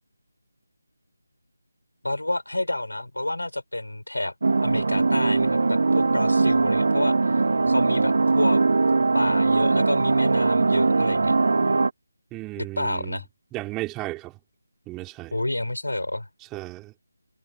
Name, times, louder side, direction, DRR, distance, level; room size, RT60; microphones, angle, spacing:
voice 1, 2.0-4.3 4.6-7.2 7.7-8.6 9.1-11.3 12.6-13.2 15.3-16.3, left 1 dB, 70° left, 4.9 m, -29 dB
sound 1, 4.4-11.9, right 3 dB, 50° right, 2.1 m, -21 dB
voice 2, 12.3-13.2 13.5-14.3 14.9-15.3 16.5-16.9, right 20 dB, 10° right, 4.2 m, -34 dB
figure-of-eight pair, 160°, 0 cm